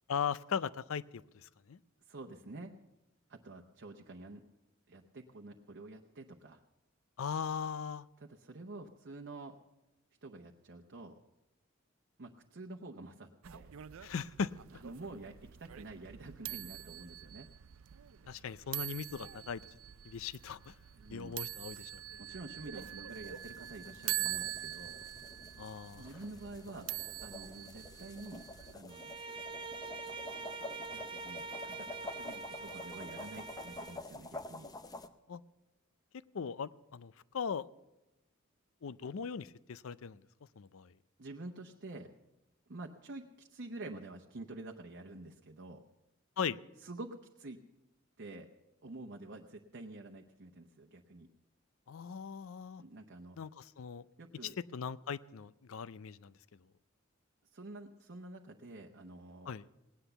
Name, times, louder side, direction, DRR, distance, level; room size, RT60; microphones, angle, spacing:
voice 1, 0.1-1.8 7.2-8.1 14.0-14.5 18.3-19.6 20.0-20.7 21.1-22.0 25.6-26.1 35.3-35.4 36.3-37.7 38.8-40.2 40.6-40.9 46.4-46.6 51.9-52.8 53.4-54.0 54.4-56.3 59.5-59.7, left 6 dB, 75° left, 18 dB, 0.5 m, -39 dB
voice 2, 2.0-2.7 3.3-4.4 4.9-6.6 8.2-9.6 10.2-11.2 12.2-13.7 14.7-17.5 21.0-21.4 22.2-25.0 26.0-26.9 27.2-28.4 28.7-29.2 30.9-34.7 41.2-42.1 42.7-45.8 46.8-47.6 48.2-48.5 48.8-51.3 52.8-53.4 54.2-54.5 57.5-59.5, right 2 dB, 55° right, 2 dB, 0.9 m, -48 dB
sound 1, 13.4-28.7, right 14 dB, 80° right, 0.5 m, -44 dB
sound 2, 23.1-35.1, left 2 dB, 20° left, 0.7 m, -49 dB
Bowed string instrument, 28.9-34.1, right 4 dB, 25° right, 0.5 m, -44 dB
18.0 x 10.0 x 6.9 m, 0.96 s
head